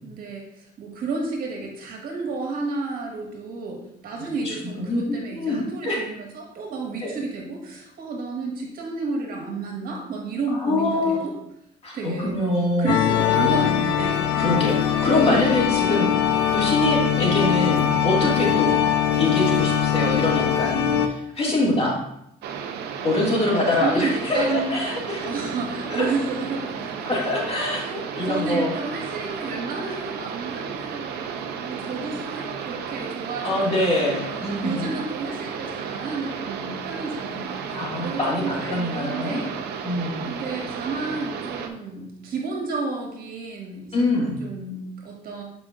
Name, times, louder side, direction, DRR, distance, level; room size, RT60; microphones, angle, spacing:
voice 1, 0.0-11.3 11.9-12.4 12.8-14.2 23.8-24.8 25.2-27.3 27.6-34.2 34.6-37.6 38.0-39.5 40.3-44.0 44.4-45.4, right 3 dB, 60° right, -1 dB, 1.7 m, -31 dB
voice 2, 4.2-5.0 5.3-6.0 7.0-7.1 10.5-11.2 11.8-13.0 14.4-16.1 16.5-18.7 19.1-22.0 23.0-25.3 25.9-26.1 27.1-28.7 33.4-34.9 37.7-39.4 39.8-40.3 43.9-44.4, left 1 dB, 35° left, -3 dB, 2.0 m, -24 dB
sound 1, 12.9-21.1, left 9 dB, 80° left, 0.7 m, -21 dB
sound 2, 22.4-41.7, right 7 dB, 75° right, 0.6 m, -33 dB
7.4 x 5.1 x 2.5 m, 0.77 s
cardioid pair, 110°, 17 cm